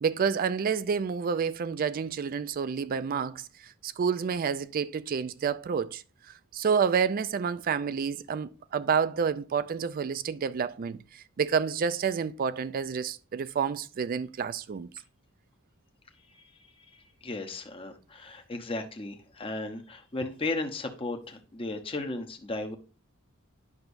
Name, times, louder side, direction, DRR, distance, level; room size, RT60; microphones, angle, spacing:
voice 1, 0.0-3.5 3.8-6.0 6.5-11.0 11.4-14.9, right 6 dB, 45° right, 0.4 m, -29 dB
voice 2, 17.2-22.8, left 2 dB, 25° left, 0.8 m, -35 dB
9.7 x 5.8 x 2.6 m
head